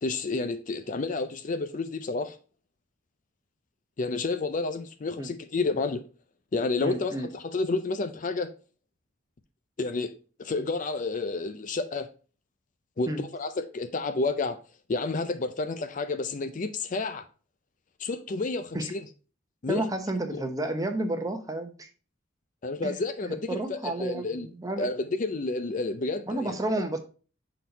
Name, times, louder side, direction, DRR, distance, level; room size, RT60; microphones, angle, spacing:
voice 1, 0.0-2.4 4.0-6.0 6.5-8.5 9.8-10.1 10.4-12.1 13.0-14.6 14.9-17.2 18.0-19.0 19.6-19.8 22.6-23.4 23.7-24.5 24.8-26.5, left 3 dB, 45° left, 0.5 m, -30 dB
voice 2, 6.8-7.3 13.1-13.2 18.7-18.9 19.7-21.9 22.8-22.9 23.2-24.9 26.3-27.0, right 2 dB, 20° right, 0.8 m, -31 dB
6.3 x 4.0 x 4.0 m
head